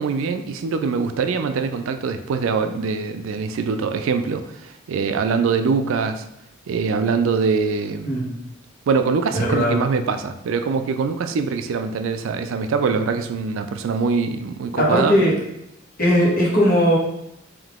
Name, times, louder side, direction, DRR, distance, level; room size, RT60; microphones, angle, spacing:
voice 1, 0.0-6.3 6.7-8.2 8.9-15.2, right 5 dB, 75° right, 8 dB, 0.3 m, -23 dB
voice 2, 9.3-9.8 14.8-15.3 16.0-17.0, equal, 45° left, -5 dB, 1.3 m, -18 dB
3.7 x 2.7 x 3.6 m, 0.81 s
head